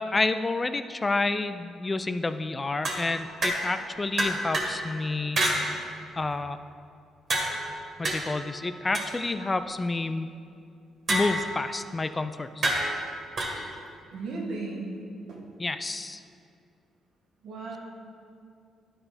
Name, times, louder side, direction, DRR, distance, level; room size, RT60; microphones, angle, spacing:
voice 1, 0.0-6.6 8.0-10.3 11.1-12.7 15.6-16.2, left 3 dB, 25° left, 11 dB, 0.3 m, -29 dB
sound 1, 2.8-3.8 4.2-4.8 5.4-5.6 7.3-9.7 11.1-11.7 12.6-13.6, right 1 dB, 50° right, 1.9 m, -29 dB
voice 2, 14.1-15.0 15.3-15.4 17.4-17.8, right 3 dB, 70° right, -1 dB, 1.6 m, -36 dB
11.0 x 4.8 x 5.0 m, 2.4 s
cardioid pair, 90°, 0 cm